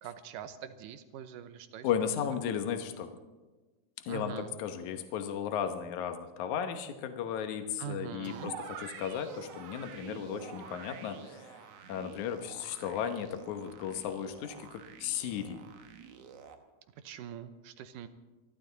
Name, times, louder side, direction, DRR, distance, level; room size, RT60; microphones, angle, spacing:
voice 1, 0.0-2.4 4.1-4.6 7.8-8.6 16.9-18.1, right 9 dB, 85° right, 11 dB, 2.5 m, -43 dB
voice 2, 1.8-3.1 4.1-11.6 11.9-15.6, left 8 dB, 70° left, 7 dB, 2.4 m, -35 dB
sound 1, 8.2-16.6, right 7 dB, 60° right, 1.8 m, -48 dB
27.0 x 12.0 x 4.0 m, 1.2 s
omnidirectional pair, 3.7 m